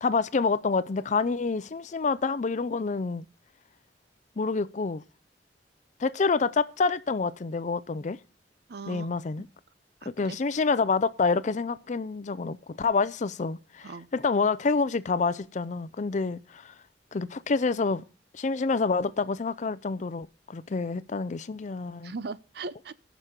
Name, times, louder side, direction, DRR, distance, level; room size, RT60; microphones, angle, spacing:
voice 1, 0.0-3.3 4.4-5.0 6.0-8.2 8.9-9.5 10.1-16.7 17.1-18.0 18.3-22.1, left 4 dB, 40° left, 0.5 m, -27 dB
voice 2, 8.7-9.1 10.0-10.4 13.8-14.1 22.0-22.9, right 4 dB, 65° right, 0.6 m, -38 dB
16.0 x 6.2 x 5.0 m
head